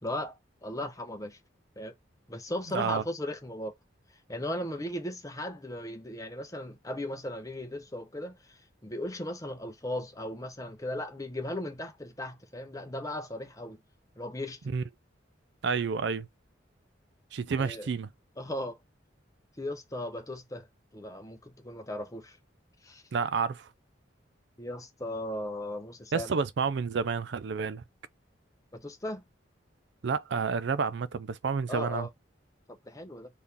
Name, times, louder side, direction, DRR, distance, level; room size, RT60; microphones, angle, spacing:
voice 1, 0.0-1.4 1.8-1.9 2.3-3.7 4.3-13.8 14.2-14.7 17.6-17.9 18.4-18.8 19.6-20.7 20.9-22.4 22.8-23.0 24.6-26.4 28.7-29.2 31.7-32.1 32.9-33.3, left 1 dB, 20° left, 0.8 m, -37 dB
voice 2, 15.6-16.3 17.3-18.1 23.1-23.7 26.1-27.8 30.0-32.1, right 5 dB, 65° right, 0.4 m, -30 dB
3.8 x 2.8 x 3.3 m
head